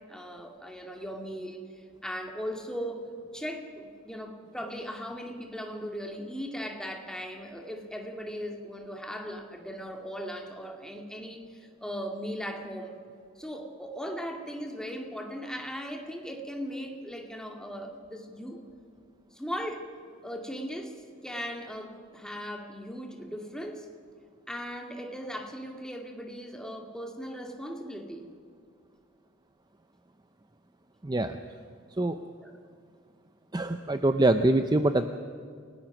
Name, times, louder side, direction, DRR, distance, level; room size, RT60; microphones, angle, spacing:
voice 1, 0.1-3.1 3.3-13.0 13.4-18.6 19.3-19.9 20.2-21.0 21.2-23.9 24.5-28.3 32.4-32.5, equal, 5° left, 2 dB, 2.1 m, -38 dB
voice 2, 31.0-31.4 32.0-32.2 33.5-35.1, right 2 dB, 20° right, 8 dB, 0.6 m, -24 dB
28.5 x 18.5 x 6.0 m, 2.3 s
head